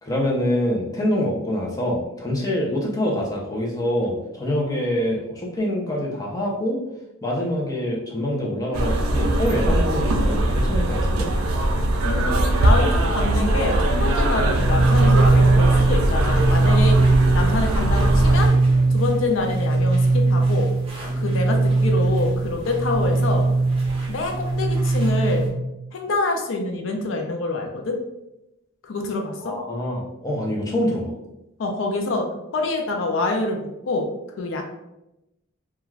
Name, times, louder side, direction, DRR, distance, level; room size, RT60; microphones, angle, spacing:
voice 1, 0.0-6.8 7.2-11.3 29.4-31.1, left 1 dB, 15° left, -3 dB, 0.5 m, -25 dB
sound 1, 8.7-18.5, right 1 dB, 90° right, 0.4 m, -21 dB
voice 2, 12.0-17.0 17.3-18.5 18.9-20.7 21.2-23.4 24.1-25.5 25.9-28.0 28.8-29.6 31.6-34.1 34.4-34.6, left 3 dB, 70° left, 3 dB, 0.4 m, -26 dB
sound 2, 14.5-25.5, right 3 dB, 25° right, 0.7 m, -20 dB
2.4 x 2.3 x 3.1 m, 0.90 s
head